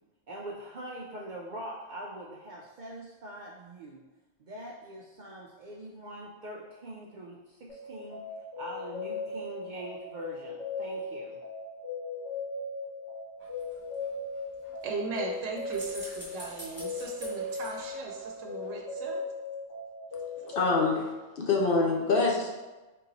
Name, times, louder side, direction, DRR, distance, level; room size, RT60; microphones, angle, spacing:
voice 1, 0.3-4.0 4.4-8.2 8.6-11.4, right 1 dB, 60° right, -3 dB, 0.5 m, -43 dB
sound 1, 7.7-20.9, left 3 dB, 80° left, 1.6 m, -38 dB
sound 2, 13.4-18.7 19.0-19.1, equal, 10° right, 1.2 m, -49 dB
voice 2, 14.8-19.2, right 4 dB, 90° right, 0 dB, 0.9 m, -37 dB
voice 3, 20.4-22.5, left 3 dB, 55° left, -1 dB, 0.7 m, -26 dB
3.7 x 2.9 x 3.9 m, 1.2 s
omnidirectional pair, 1.2 m